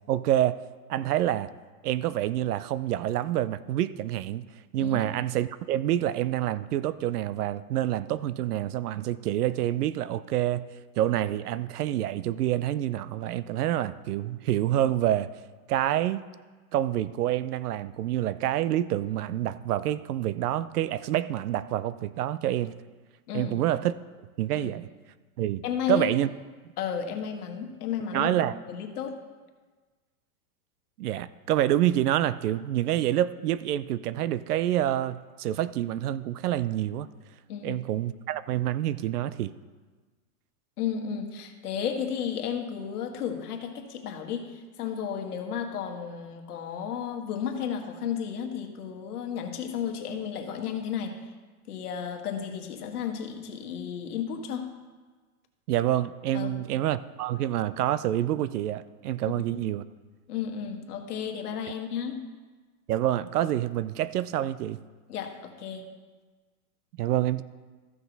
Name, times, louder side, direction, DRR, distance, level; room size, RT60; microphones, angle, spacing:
voice 1, 0.1-0.6 0.9-1.5 1.8-4.5 4.7-10.7 11.0-15.3 15.7-16.2 16.7-22.8 23.3-24.0 24.4-24.9 25.4-26.3 28.1-28.6 31.0-37.1 37.6-39.6 55.7-59.8 62.9-64.8 67.0-67.4, right 12 dB, 85° right, 16 dB, 0.6 m, -27 dB
voice 2, 25.6-26.1 26.8-28.3 28.7-29.2 37.5-37.8 40.8-51.3 51.7-54.7 56.3-56.7 59.3-59.4 60.3-62.3 65.1-65.9, left 8 dB, 85° left, 4 dB, 1.5 m, -33 dB
14.0 x 6.3 x 4.0 m, 1.4 s
supercardioid pair, 175°, 45 cm